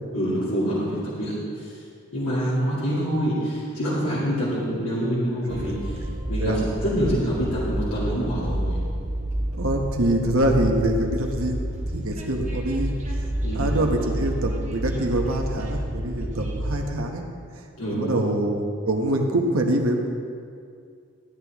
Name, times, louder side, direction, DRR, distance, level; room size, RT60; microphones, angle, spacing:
voice 1, 0.1-1.3 2.1-5.9 6.3-6.5 6.8-8.8 13.4-13.7 17.8-18.0, equal, 85° left, -9 dB, 2.5 m, -26 dB
Train, 5.5-16.7, right 1 dB, 35° right, 1.3 m, -29 dB
voice 2, 9.5-12.9 13.5-17.2 17.9-20.1, right 1 dB, 75° right, 3 dB, 1.1 m, -25 dB
13.0 x 9.1 x 3.5 m, 2.3 s
head